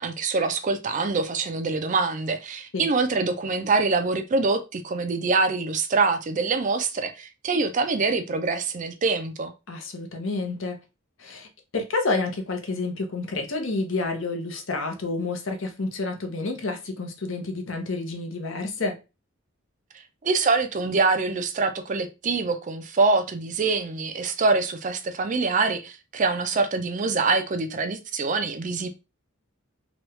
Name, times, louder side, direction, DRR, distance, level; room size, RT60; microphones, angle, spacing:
voice 1, 0.0-9.5 20.2-28.9, right 4 dB, 40° right, 0.4 m, -25 dB
voice 2, 9.7-10.8 11.2-19.0, left 3 dB, 65° left, 0.7 m, -29 dB
3.0 x 2.3 x 3.0 m
head